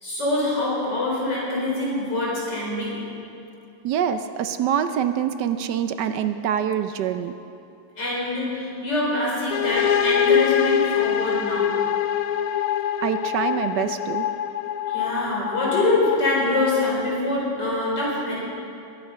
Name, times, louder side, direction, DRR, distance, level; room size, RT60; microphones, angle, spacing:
voice 1, 0.0-3.1 8.0-11.8 14.9-18.4, left 2 dB, 55° left, -5 dB, 4.9 m, -25 dB
voice 2, 3.8-7.3 13.0-14.3, right 9 dB, 70° right, 9 dB, 1.1 m, -25 dB
sound 1, 9.5-17.2, left 9 dB, 85° left, 0.7 m, -24 dB
21.5 x 9.0 x 5.6 m, 2.6 s
omnidirectional pair, 2.3 m